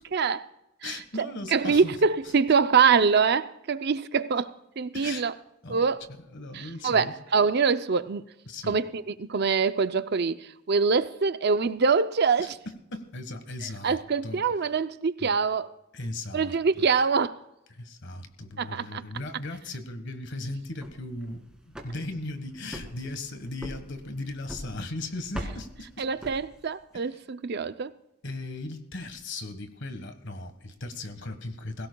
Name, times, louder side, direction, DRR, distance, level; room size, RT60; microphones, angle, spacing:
voice 1, 0.1-0.5 0.8-5.3 5.7-6.0 6.5-8.3 8.7-12.5 13.8-15.7 16.3-17.4 18.6-19.0 26.0-27.9, right 5 dB, 55° right, 0.5 m, -24 dB
voice 2, 0.8-1.9 4.9-5.3 5.6-5.8 6.3-7.2 8.5-8.8 12.4-14.4 15.2-15.3 15.9-16.9 17.7-26.1 28.2-31.9, left 2 dB, 60° left, 1.5 m, -37 dB
sound 1, 20.6-26.9, equal, 5° right, 2.1 m, -43 dB
21.5 x 16.5 x 2.3 m
head